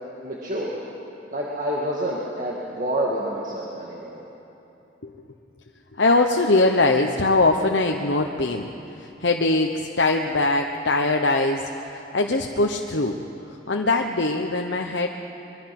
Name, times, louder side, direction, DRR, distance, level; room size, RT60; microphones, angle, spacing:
voice 1, 0.2-0.8 1.3-4.2, right 1 dB, 45° right, -4 dB, 2.1 m, -28 dB
voice 2, 5.9-8.7 9.0-13.2 13.7-15.1, left 2 dB, 70° left, 2 dB, 1.0 m, -22 dB
24.0 x 22.5 x 6.0 m, 2.9 s
head